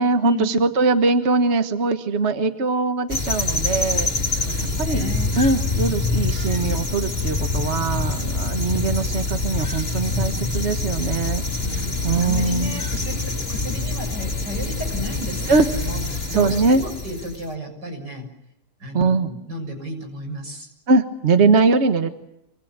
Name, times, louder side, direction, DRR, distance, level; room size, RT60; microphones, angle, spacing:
voice 1, 0.0-4.5 4.8-11.4 11.7-12.7 15.5-15.7 16.3-16.8 18.9-19.3 20.9-22.1, right 3 dB, 40° right, 7 dB, 1.6 m, -21 dB
sound 1, 3.1-17.4, left 3 dB, 35° left, 2.9 m, -25 dB
voice 2, 4.4-5.3 11.6-18.3 18.8-20.7, equal, 85° right, 5 dB, 7.6 m, -33 dB
26.5 x 25.0 x 7.5 m, 0.85 s
omnidirectional pair, 1.8 m